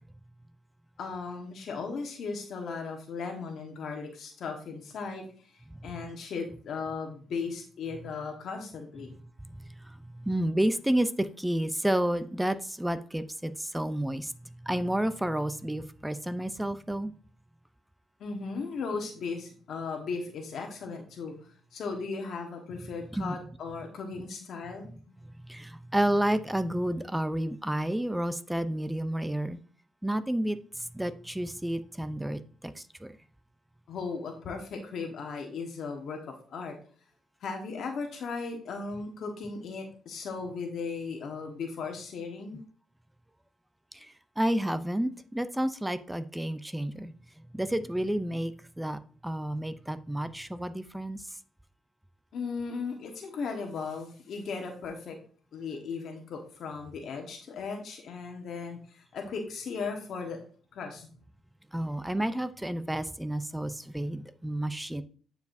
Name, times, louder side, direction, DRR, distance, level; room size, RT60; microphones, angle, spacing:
voice 1, 1.0-9.1 18.2-25.1 33.9-36.8 37.4-42.6 52.3-55.2 55.5-60.4 60.7-61.1, left 4 dB, 65° left, 1.2 m, -37 dB
voice 2, 9.9-14.3 14.6-17.1 23.1-23.4 25.5-29.6 30.0-30.6 30.9-33.1 44.4-47.1 47.5-51.2 61.7-65.0, right 1 dB, 5° right, 0.5 m, -30 dB
9.1 x 4.8 x 2.6 m
cardioid pair, 90°, 0 cm